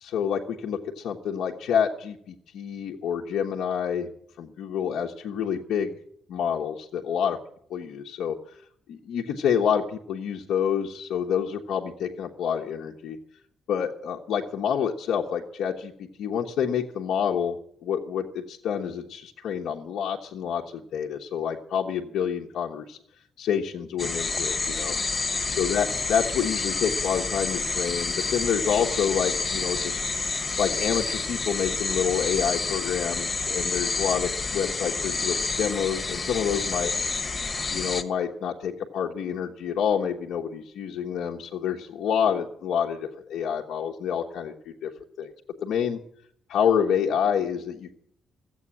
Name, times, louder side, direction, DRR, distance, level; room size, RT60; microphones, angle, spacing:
voice 1, 0.0-4.1 4.4-6.0 6.3-7.4 7.7-8.4 8.9-13.2 13.7-15.9 16.2-17.6 17.8-23.0 23.4-25.0 25.5-30.0 30.6-36.9 37.7-44.9 45.2-45.3 45.6-46.0 46.5-48.0, left 8 dB, 75° left, -1 dB, 1.2 m, -28 dB
sound 1, 24.0-38.0, left 3 dB, 20° left, 1.1 m, -29 dB
15.0 x 8.2 x 9.8 m, 0.67 s
cardioid pair, 175°, 0 cm